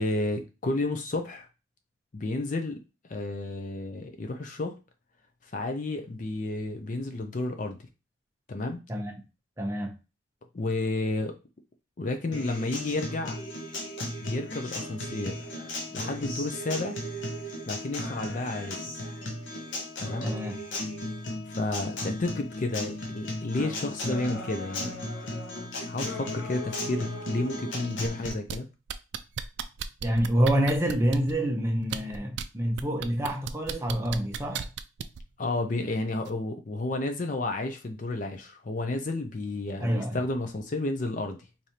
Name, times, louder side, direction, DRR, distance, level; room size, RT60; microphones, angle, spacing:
voice 1, 0.0-1.5 2.1-2.8 3.1-4.8 5.4-7.8 8.5-8.8 10.5-11.3 12.0-13.4 14.2-15.5 15.9-17.0 17.7-18.8 20.0-20.3 21.5-24.9 25.9-28.7 35.4-41.4, left 2 dB, 40° left, 0.5 m, -31 dB
voice 2, 9.6-9.9 20.2-20.6 30.0-34.7 39.8-40.2, equal, 15° right, 0.7 m, -27 dB
Acoustic guitar, 12.3-28.3, left 1 dB, 70° left, 0.8 m, -35 dB
sound 1, 28.0-28.6 28.9-31.3 31.8-32.4 32.8-35.2 36.2-36.3, right 8 dB, 65° right, 0.3 m, -34 dB
4.8 x 2.7 x 2.8 m
head